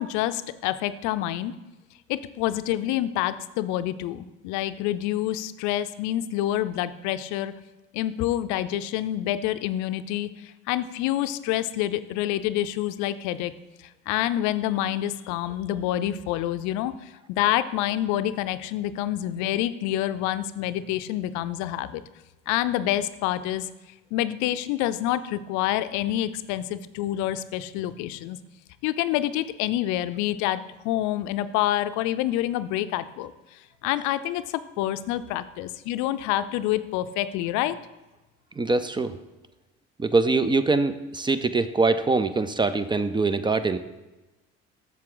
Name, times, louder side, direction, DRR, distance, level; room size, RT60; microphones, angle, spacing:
voice 1, 0.0-1.5 2.1-7.5 7.9-13.5 13.8-22.0 22.5-23.7 24.1-28.4 28.8-37.8, left 13 dB, 75° left, 13 dB, 0.5 m, -27 dB
voice 2, 38.5-39.2 40.0-43.8, right 3 dB, 15° right, 12 dB, 0.5 m, -23 dB
7.5 x 6.9 x 3.8 m, 1.1 s
supercardioid pair, 80°, 29 cm